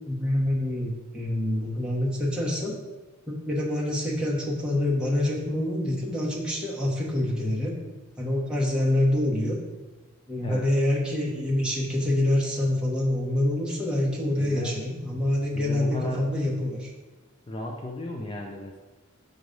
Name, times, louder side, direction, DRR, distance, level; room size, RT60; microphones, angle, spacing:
voice 1, 0.1-2.8 3.3-7.7 8.2-9.6 10.3-16.9, left 1 dB, 5° right, -5 dB, 1.2 m, -26 dB
voice 2, 14.4-14.8 15.5-16.3 17.5-18.8, left 1 dB, 25° left, 0 dB, 0.5 m, -35 dB
6.5 x 3.1 x 5.2 m, 1.2 s
head